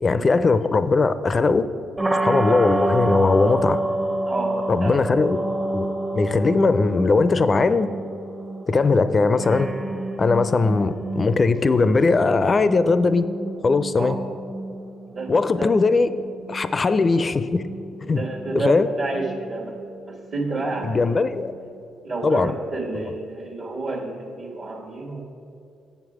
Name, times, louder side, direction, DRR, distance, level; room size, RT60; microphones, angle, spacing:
voice 1, 0.0-1.7 2.2-3.8 4.7-5.4 5.7-7.9 8.7-9.7 10.2-13.3 13.6-14.2 15.3-16.1 16.5-17.6 18.1-18.2 18.5-18.9 20.8-21.5 22.2-22.5 23.0-23.1, left 3 dB, 35° left, 13 dB, 0.4 m, -19 dB
sound 1, 2.0-21.8, right 2 dB, 20° right, 0.7 m, -30 dB
voice 2, 4.2-5.1 14.0-14.2 15.1-15.7 18.0-19.8 20.1-21.0 22.0-25.2, right 2 dB, 55° right, -4 dB, 1.3 m, -30 dB
7.9 x 7.0 x 4.8 m, 2.7 s
cardioid pair, 90°, 0 cm